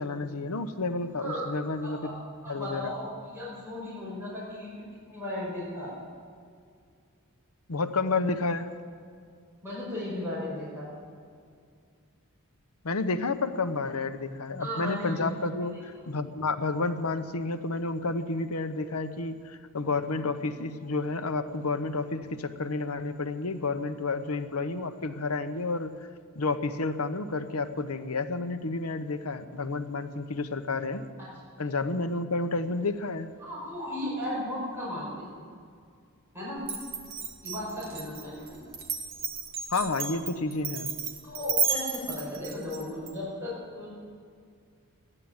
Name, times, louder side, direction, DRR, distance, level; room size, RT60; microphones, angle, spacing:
voice 1, 0.0-2.1 2.5-2.9 7.7-8.7 12.8-25.9 26.3-31.0 31.6-33.3 39.7-40.9, left 3 dB, 75° left, 9 dB, 0.9 m, -30 dB
voice 2, 2.4-4.7 5.1-5.9 9.6-10.9 14.5-15.3 15.7-15.8 33.4-35.4 36.3-36.7 37.4-38.7 41.2-43.9, left 1 dB, 10° right, -8 dB, 5.5 m, -35 dB
Glass, 36.6-43.1, right 6 dB, 45° right, 1.9 m, -32 dB
14.5 x 11.0 x 8.9 m, 2.2 s
head